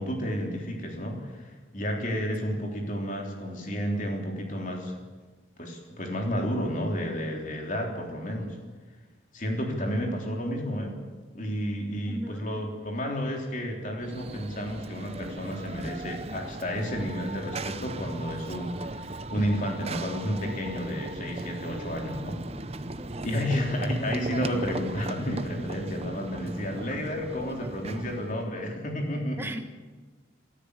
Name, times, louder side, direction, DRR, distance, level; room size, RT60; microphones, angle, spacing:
voice 1, 0.0-5.0 5.6-8.6 9.3-11.0 11.3-22.4 23.2-29.5, equal, 40° left, 1 dB, 3.7 m, -31 dB
voice 2, 2.3-2.6 12.1-12.8 19.3-19.6 23.0-23.4 27.4-27.7 29.4-29.6, right 1 dB, 10° right, 5 dB, 1.5 m, -39 dB
Run / Train, 14.0-28.5, right 2 dB, 30° right, 0.8 m, -38 dB
24.0 x 13.5 x 8.4 m, 1.3 s
head